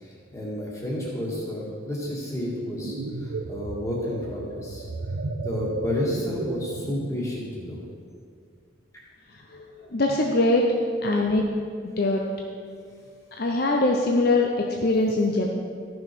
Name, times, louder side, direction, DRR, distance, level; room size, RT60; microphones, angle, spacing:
voice 1, 0.3-4.9 5.4-7.8, left 1 dB, 15° left, -5 dB, 1.9 m, -31 dB
sound 1, 2.6-7.3, right 3 dB, 80° right, 0.5 m, -34 dB
voice 2, 9.9-10.6 11.0-11.4 11.8-12.2 13.4-15.5, left 2 dB, 50° left, 0 dB, 0.7 m, -22 dB
13.5 x 6.3 x 4.6 m, 2.2 s
head